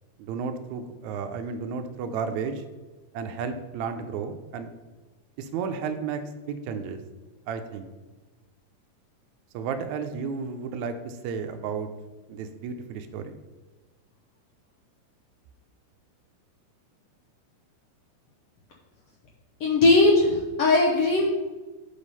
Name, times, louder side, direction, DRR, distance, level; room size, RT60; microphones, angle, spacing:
voice 1, 0.2-2.6 3.1-4.7 5.4-6.2 6.5-7.0 7.5-7.9 9.5-11.9 12.3-13.4, right 6 dB, 80° right, 7 dB, 1.6 m, -32 dB
voice 2, 19.6-21.3, left 2 dB, 80° left, -2 dB, 1.4 m, -19 dB
7.1 x 5.0 x 5.4 m, 1.2 s
omnidirectional pair, 4.0 m